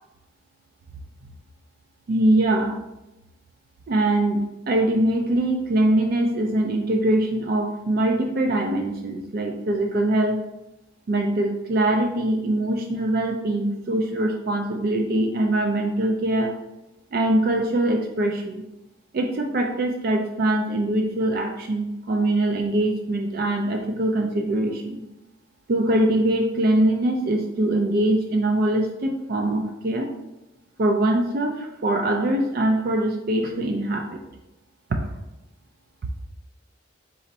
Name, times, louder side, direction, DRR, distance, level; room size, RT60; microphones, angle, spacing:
voice 1, 2.1-2.8 3.9-10.4 11.1-16.5 17.1-18.6 19.1-25.0 25.7-30.1 30.8-34.2 34.9-35.0, right 1 dB, 50° right, 3 dB, 0.4 m, -23 dB
4.1 x 2.5 x 4.0 m, 0.95 s
head